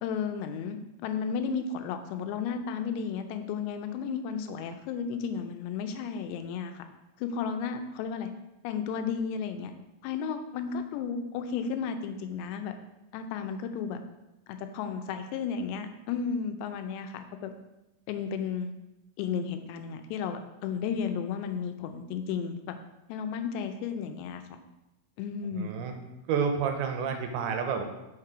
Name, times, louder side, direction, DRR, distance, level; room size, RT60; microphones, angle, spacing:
voice 1, 0.0-6.8 7.2-8.3 8.6-9.7 10.0-12.7 13.1-14.0 14.5-17.5 18.1-18.7 19.2-22.8 23.1-24.6 25.2-25.7, left 6 dB, 85° left, 7 dB, 2.8 m, -33 dB
voice 2, 25.6-25.9 26.3-27.8, right 6 dB, 85° right, 5 dB, 3.1 m, -29 dB
6.6 x 4.4 x 4.9 m, 0.96 s
omnidirectional pair, 5.0 m